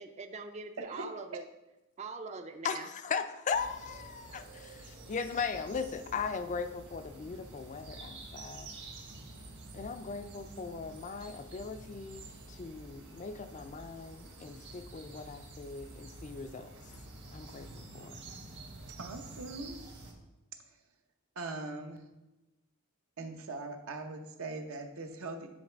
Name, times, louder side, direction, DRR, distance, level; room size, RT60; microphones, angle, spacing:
voice 1, 0.0-1.4 2.0-2.9, right 4 dB, 30° right, 0.4 m, -42 dB
voice 2, 2.6-8.7 9.7-16.7 17.3-18.2, left 5 dB, 35° left, 0.3 m, -38 dB
sound 1, 3.5-20.1, right 2 dB, 55° right, 1.2 m, -49 dB
voice 3, 19.0-19.8 20.7-20.8 21.4-22.0 23.2-25.5, right 2 dB, 75° right, 0.8 m, -41 dB
9.1 x 3.2 x 4.4 m
head